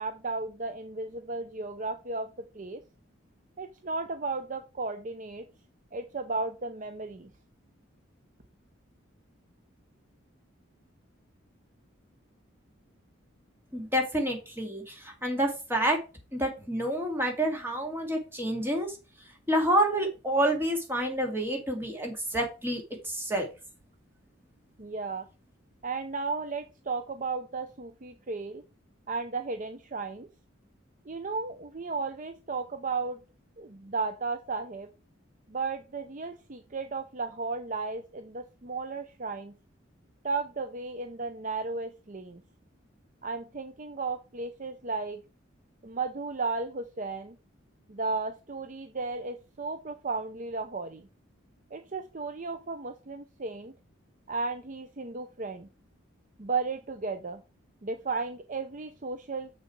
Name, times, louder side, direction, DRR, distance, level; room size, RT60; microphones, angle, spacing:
voice 1, 0.0-2.3 2.5-2.8 3.6-5.5 5.9-7.3 24.8-25.3 25.8-28.6 29.1-30.3 31.1-33.2 33.6-34.9 35.5-39.6 40.2-42.4 43.2-45.2 45.8-47.4 47.9-51.1 51.7-53.7 54.3-55.7 56.4-57.4 57.8-59.5, right 4 dB, 40° right, 9 dB, 0.6 m, -34 dB
voice 2, 13.7-16.0 16.3-19.0 19.5-23.5, right 1 dB, 10° right, 2 dB, 2.2 m, -28 dB
7.2 x 6.5 x 4.7 m, 0.31 s
head